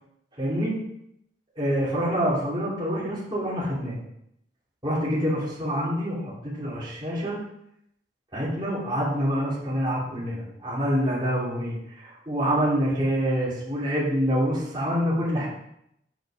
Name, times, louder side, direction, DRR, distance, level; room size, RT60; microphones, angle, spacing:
voice 1, 0.4-0.8 1.6-4.0 4.8-7.4 8.3-15.5, equal, 25° right, -8 dB, 3.1 m, -26 dB
8.1 x 6.7 x 5.0 m, 0.77 s
head